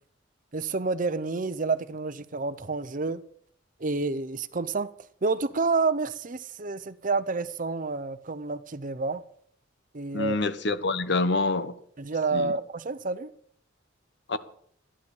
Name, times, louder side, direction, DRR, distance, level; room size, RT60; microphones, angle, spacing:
voice 1, 0.5-3.2 3.8-4.9 5.2-9.2 9.9-10.4 12.0-13.3, right 3 dB, 45° right, 0.8 m, -29 dB
voice 2, 10.1-11.7 12.3-12.5 14.3-14.4, left 3 dB, 60° left, 1.1 m, -26 dB
14.5 x 11.0 x 7.2 m
head